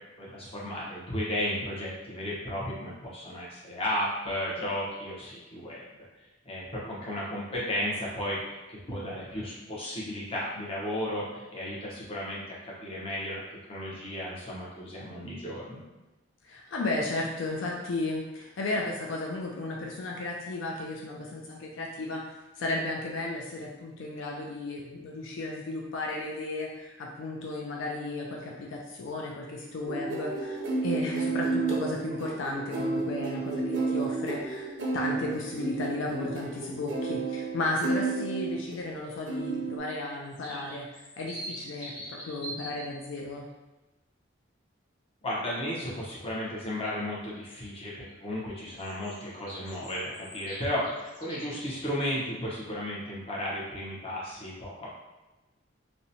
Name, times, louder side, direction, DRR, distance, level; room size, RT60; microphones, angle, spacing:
voice 1, 0.2-5.8 6.4-13.4 13.7-15.8 45.2-54.9, left 1 dB, 30° left, -6 dB, 0.7 m, -34 dB
voice 2, 16.4-22.2 22.6-43.5, left 2 dB, 75° left, -1 dB, 0.4 m, -34 dB
sound 1, 29.9-38.9 39.3-39.8, right 3 dB, 60° right, 0.4 m, -31 dB
sound 2, 40.1-42.9 48.8-51.6, right 1 dB, 55° left, 1.3 m, -43 dB
2.7 x 2.1 x 2.6 m, 1.1 s
head